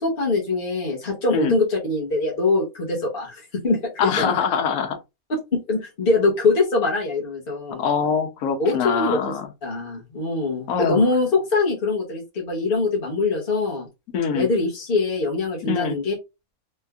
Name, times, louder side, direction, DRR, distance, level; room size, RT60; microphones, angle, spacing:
voice 1, 0.0-4.3 5.3-7.8 8.6-9.2 9.6-13.9 14.3-16.1, left 3 dB, 45° left, 1.1 m, -23 dB
voice 2, 4.0-5.0 7.8-9.5 10.7-11.0 14.1-14.5 15.6-16.0, left 6 dB, 80° left, 1.2 m, -23 dB
3.2 x 3.0 x 2.3 m
omnidirectional pair, 1.5 m